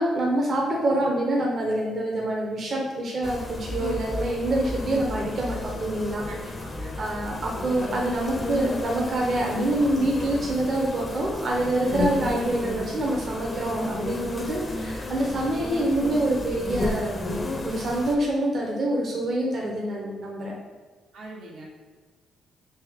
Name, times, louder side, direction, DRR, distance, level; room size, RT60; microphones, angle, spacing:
voice 1, 0.0-6.3 7.0-17.2 17.6-20.5, right 1 dB, 50° right, -2 dB, 0.6 m, -26 dB
sound 1, 3.2-18.2, left 2 dB, 30° left, 0.4 m, -32 dB
voice 2, 6.3-7.1 21.1-21.6, right 1 dB, 80° right, -4 dB, 1.0 m, -42 dB
3.4 x 2.9 x 3.4 m, 1.4 s
cardioid pair, 90°, 0 cm